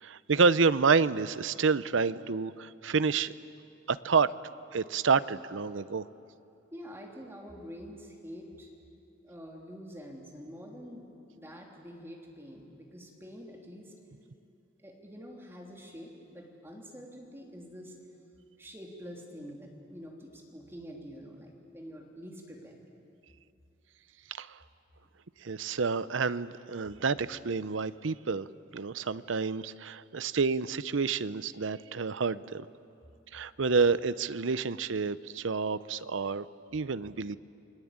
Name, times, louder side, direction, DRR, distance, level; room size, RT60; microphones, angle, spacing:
voice 1, 0.0-3.3 3.9-4.3 4.7-6.0 24.4-24.5 25.4-28.5 28.7-32.7 33.3-36.5 36.7-37.4, right 5 dB, 85° right, 15 dB, 0.7 m, -28 dB
voice 2, 6.7-8.7 9.2-11.0 11.3-13.9 14.8-17.9 18.6-22.7, equal, 15° right, -1 dB, 3.2 m, -46 dB
29.5 x 21.5 x 8.8 m, 2.7 s
head